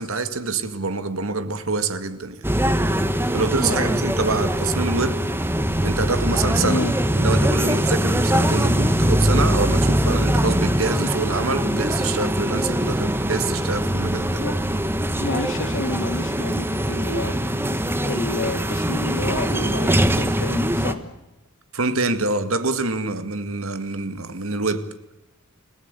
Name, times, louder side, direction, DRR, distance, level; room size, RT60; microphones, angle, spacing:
voice 1, 0.0-2.4 3.3-5.2 5.8-6.8 7.2-14.4 21.7-24.9, right 3 dB, 65° right, 1.9 m, -26 dB
sound 1, 2.4-20.9, equal, 10° right, 1.3 m, -22 dB
voice 2, 3.6-4.0 6.6-7.0 11.0-11.1 14.4-14.6 15.2-17.5 18.0-21.0, left 2 dB, 60° left, 2.2 m, -29 dB
29.5 x 17.0 x 8.2 m
head